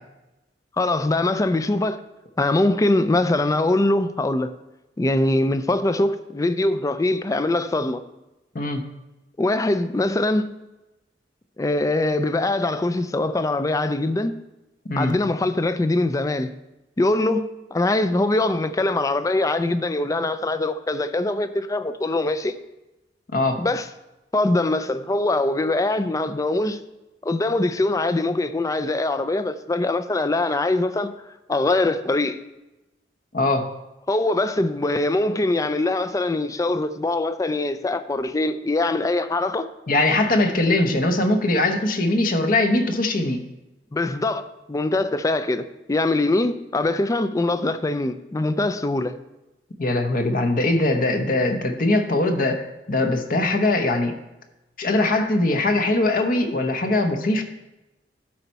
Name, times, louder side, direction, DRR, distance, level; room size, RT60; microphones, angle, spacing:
voice 1, 0.8-2.0 2.4-4.6 5.0-8.0 9.4-10.5 11.6-14.4 15.0-16.6 17.0-22.6 23.6-23.9 24.3-26.8 27.2-31.1 31.5-32.4 34.1-39.7 43.9-49.1, left 2 dB, 20° left, 0.4 m, -22 dB
voice 2, 23.3-23.6 33.3-33.7 39.9-43.4 49.8-54.2 54.8-57.4, left 2 dB, 50° left, 0.9 m, -21 dB
12.0 x 4.5 x 4.1 m
head